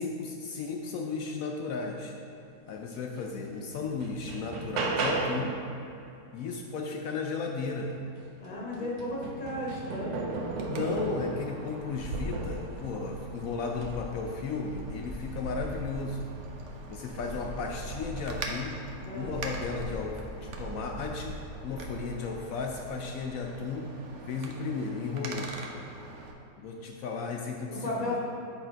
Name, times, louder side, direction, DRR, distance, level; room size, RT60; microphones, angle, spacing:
voice 1, 0.0-2.1 2.7-5.5 6.3-7.9 8.8-8.9 10.7-16.3 16.9-18.8 19.1-21.4 21.6-23.9 24.3-25.6 26.6-28.2, left 4 dB, 80° left, 1 dB, 0.7 m, -34 dB
sound 1, 3.2-3.3 3.7-5.6 7.9-8.0 8.4-11.4 12.1-12.7 13.7-14.0, right 3 dB, 85° right, 1.5 m, -34 dB
voice 2, 8.4-10.2 19.0-19.4 27.7-28.2, left 1 dB, 35° left, -4 dB, 1.0 m, -34 dB
Wind, 10.3-26.3, right 2 dB, 60° right, 0.8 m, -41 dB
8.0 x 4.2 x 4.9 m, 2.8 s
omnidirectional pair, 2.0 m